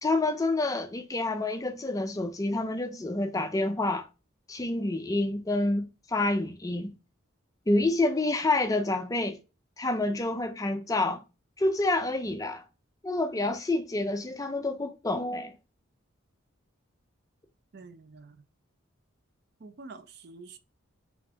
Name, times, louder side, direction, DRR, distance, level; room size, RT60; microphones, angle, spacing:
voice 1, 0.0-4.1 4.5-6.9 7.7-9.4 9.8-11.2 11.6-12.6 13.0-15.5, left 2 dB, 15° left, 0.4 m, -28 dB
voice 2, 17.7-18.4 19.6-20.6, right 3 dB, 50° right, 0.4 m, -47 dB
4.0 x 3.4 x 2.8 m
head